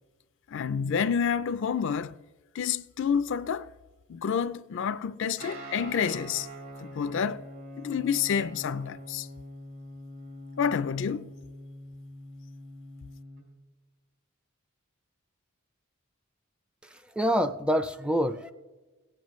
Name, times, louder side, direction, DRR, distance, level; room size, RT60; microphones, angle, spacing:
voice 1, 0.5-2.2 2.5-3.7 4.1-6.5 6.8-7.4 7.8-9.3 10.6-11.3, left 7 dB, 60° left, 0.4 m, -29 dB
Guitar, 5.4-13.4, equal, 70° right, 4.2 m, -44 dB
voice 2, 16.8-18.5, equal, 5° right, 0.4 m, -27 dB
17.5 x 8.9 x 3.1 m
head